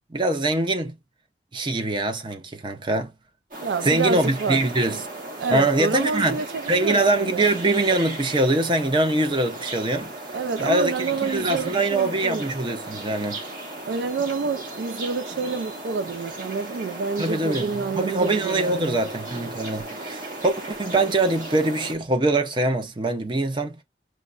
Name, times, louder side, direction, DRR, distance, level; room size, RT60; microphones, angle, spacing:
voice 1, 0.1-1.0 1.5-3.1 3.8-5.0 5.5-6.4 6.7-10.1 10.6-13.4 17.2-23.8, right 2 dB, 25° right, 0.6 m, -23 dB
sound 1, 3.5-21.9, right 2 dB, 50° right, 1.3 m, -36 dB
voice 2, 3.6-4.7 5.4-7.4 10.3-12.4 13.9-19.0, right 5 dB, 80° right, 0.4 m, -28 dB
6.2 x 2.1 x 2.4 m
head